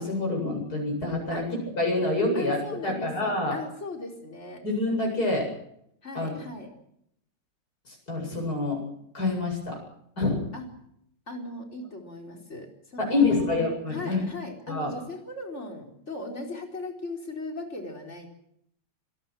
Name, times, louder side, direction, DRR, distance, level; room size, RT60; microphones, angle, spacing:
voice 1, 0.0-3.5 4.6-5.5 6.2-6.3 7.9-8.9 9.1-9.8 10.2-10.4 13.0-14.2 14.7-14.9, left 2 dB, 60° left, 0 dB, 8.8 m, -27 dB
voice 2, 2.3-4.6 6.0-6.7 10.5-10.7 11.3-13.6 13.9-18.3, left 2 dB, 40° left, 2 dB, 4.8 m, -38 dB
26.5 x 19.5 x 6.2 m, 0.74 s
omnidirectional pair, 1.9 m